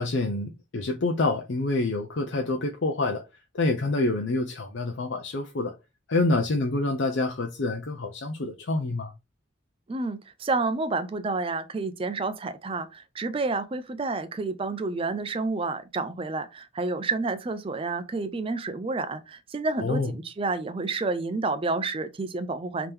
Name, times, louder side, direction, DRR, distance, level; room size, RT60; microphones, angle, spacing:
voice 1, 0.0-3.2 3.5-5.7 6.1-9.1 19.8-20.1, left 2 dB, 70° left, 0.6 m, -27 dB
voice 2, 9.9-22.9, right 3 dB, 30° right, 0.4 m, -29 dB
3.6 x 2.9 x 3.3 m
head